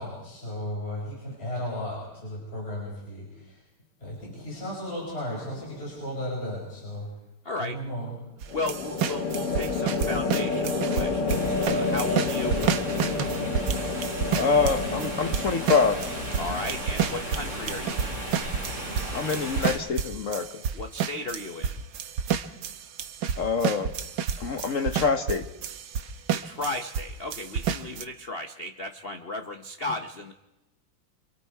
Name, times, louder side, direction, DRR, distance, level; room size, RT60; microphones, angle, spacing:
voice 1, 0.0-3.6 4.0-7.1 7.6-8.2, left 1 dB, 25° left, -4 dB, 6.1 m, -35 dB
sound 1, 5.4-5.9 8.5-19.9, left 4 dB, 80° left, 2.2 m, -31 dB
voice 2, 7.4-7.8 8.5-12.6 16.4-18.2 20.7-21.8 26.3-30.3, left 2 dB, 60° left, 5 dB, 0.6 m, -35 dB
sound 2, 8.4-27.1 27.3-28.0, right 7 dB, 65° right, 1.5 m, -30 dB
sound 3, 11.3-19.8, right 1 dB, 35° right, 5.3 m, -36 dB
voice 3, 14.3-16.0 19.1-20.5 23.4-23.9 24.4-25.4, left 5 dB, 45° left, 7 dB, 1.1 m, -25 dB
26.5 x 26.0 x 4.7 m, 0.96 s
omnidirectional pair, 2.4 m